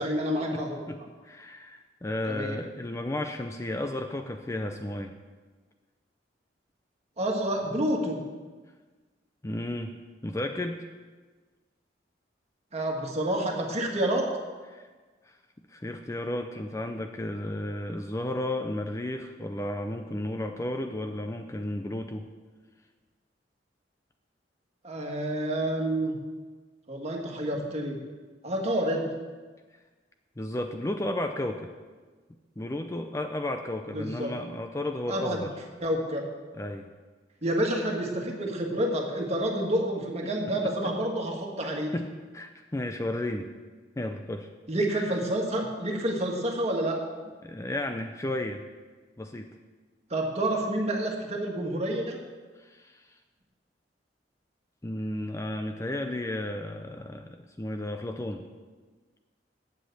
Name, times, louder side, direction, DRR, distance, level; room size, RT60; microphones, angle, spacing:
voice 1, 0.0-0.8 2.3-2.6 7.2-8.2 12.7-14.3 24.8-26.2 26.9-28.0 28.4-29.1 33.9-34.3 35.1-35.4 35.8-36.2 37.4-41.9 44.7-47.0 50.1-52.2, right 1 dB, 35° right, 0 dB, 1.7 m, -28 dB
voice 2, 0.5-5.2 9.4-9.9 10.2-10.8 14.7-14.9 15.2-15.4 15.7-22.3 30.4-31.7 32.6-35.5 36.5-36.9 40.4-40.7 41.6-42.1 42.3-43.5 44.0-44.5 44.9-45.1 47.4-48.6 49.2-49.5 52.6-53.2 54.8-58.4, left 1 dB, 15° left, 5 dB, 0.5 m, -33 dB
8.4 x 7.6 x 7.8 m, 1.4 s
head